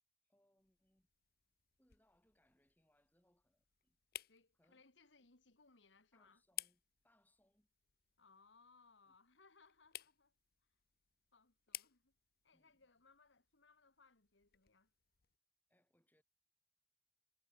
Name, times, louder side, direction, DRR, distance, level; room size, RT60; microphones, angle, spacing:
voice 1, 0.2-1.1 1.8-4.0 4.6-4.8 5.2-5.3 6.1-7.7 9.1-9.2 12.5-12.9 15.7-16.2, left 1 dB, 10° left, 7.9 m, -78 dB
sound 1, 0.6-15.4, left 14 dB, 55° left, 0.9 m, -57 dB
voice 2, 4.3-6.4 8.2-10.4 11.3-12.2 12.4-14.9, left 4 dB, 85° left, 2.2 m, -69 dB
head